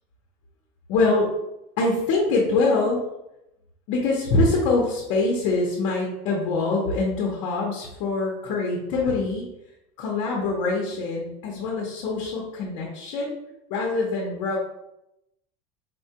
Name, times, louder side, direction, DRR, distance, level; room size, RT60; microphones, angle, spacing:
voice 1, 0.9-1.3 1.8-3.0 3.9-9.4 10.0-13.4 13.7-14.6, left 3 dB, 60° left, -2 dB, 0.7 m, -24 dB
4.2 x 2.2 x 2.8 m, 0.87 s
cardioid pair, 180°, 16 cm